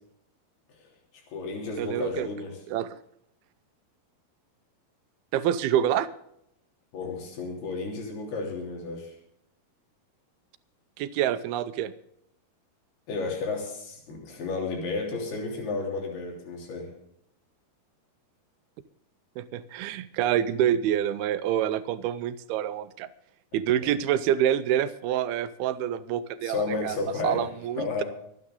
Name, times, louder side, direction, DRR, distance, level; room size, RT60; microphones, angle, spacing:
voice 1, 1.1-2.6 6.9-9.2 13.1-16.9 23.8-23.9 26.4-27.5 27.8-28.0, left 3 dB, 75° left, 0 dB, 5.2 m, -32 dB
voice 2, 1.8-2.3 2.7-3.0 5.3-6.1 11.0-11.9 19.4-23.1 23.5-27.0 27.2-28.0, right 10 dB, 80° right, 13 dB, 2.6 m, -27 dB
24.0 x 9.6 x 3.8 m, 0.72 s
omnidirectional pair, 4.5 m